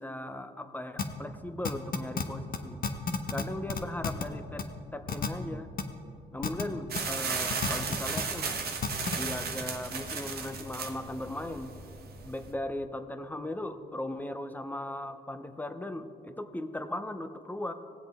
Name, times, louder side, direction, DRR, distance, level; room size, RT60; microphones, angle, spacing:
voice 1, 0.0-2.8 3.3-4.7 4.9-5.7 6.3-8.5 9.1-11.7 12.2-17.7, left 1 dB, 10° left, 9 dB, 0.7 m, -38 dB
sound 1, 1.0-1.1 1.6-2.2 2.5-2.6 2.8-3.4 3.7-4.2 4.6-4.7 5.1-5.3 5.8-5.9 6.4-6.6 6.9-7.0 7.5-8.2 8.8-9.2, left 5 dB, 50° left, 0.9 m, -30 dB
sound 2, 6.9-12.5, right 5 dB, 60° right, 1.3 m, -35 dB
18.5 x 7.8 x 3.6 m, 2.6 s
cardioid pair, 90°, 18 cm